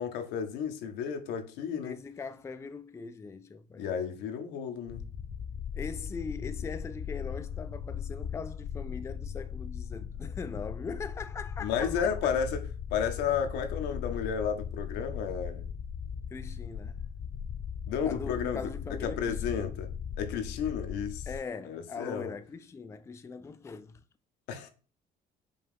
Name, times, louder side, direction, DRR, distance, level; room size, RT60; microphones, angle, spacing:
voice 1, 0.0-2.0 3.8-5.0 11.6-12.6 12.9-15.7 17.9-18.6 19.0-19.9 20.2-21.2 21.6-22.3 24.5-24.7, left 7 dB, 90° left, 0.8 m, -32 dB
voice 2, 1.8-4.0 5.7-12.3 16.3-17.0 18.0-19.7 21.3-23.9, left 5 dB, 15° left, 0.3 m, -41 dB
sound 1, 4.9-21.4, left 7 dB, 50° left, 0.8 m, -38 dB
5.2 x 2.3 x 3.5 m
cardioid pair, 110°, 17 cm